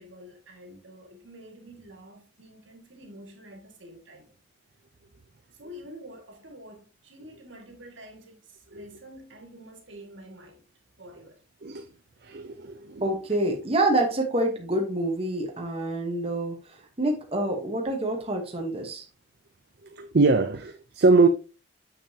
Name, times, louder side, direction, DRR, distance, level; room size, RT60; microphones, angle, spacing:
voice 1, 0.0-4.3 5.5-10.6 11.0-11.4, equal, 75° right, 2.0 m, -47 dB
voice 2, 12.2-13.0 19.9-21.3, right 3 dB, 55° right, 0.5 m, -22 dB
voice 3, 13.0-19.0, right 1 dB, 30° right, 1.1 m, -27 dB
6.8 x 5.9 x 2.8 m
head